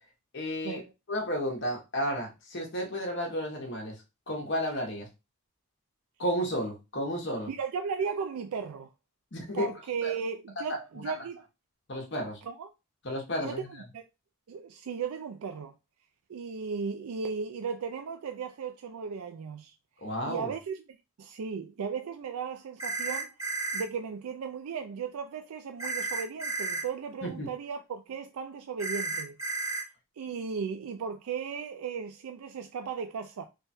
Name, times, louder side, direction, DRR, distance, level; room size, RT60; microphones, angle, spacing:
voice 1, 0.3-0.8 1.1-4.0 4.3-5.1 6.2-7.5 9.3-9.7 10.0-10.1 10.6-10.7 11.0-11.1 11.9-12.4 13.0-13.7 20.0-20.5 27.2-27.5, equal, 50° left, 0.9 m, -32 dB
voice 2, 7.5-8.9 9.5-11.4 12.4-12.7 13.4-13.6 13.9-14.1 14.5-15.7 16.3-19.7 20.3-20.8 21.2-23.3 23.7-29.4 30.2-33.4, right 6 dB, 85° right, 0.4 m, -36 dB
sound 1, 22.8-23.8 25.8-26.8 28.8-29.8, right 3 dB, 15° right, 0.9 m, -32 dB
3.4 x 2.3 x 4.2 m
head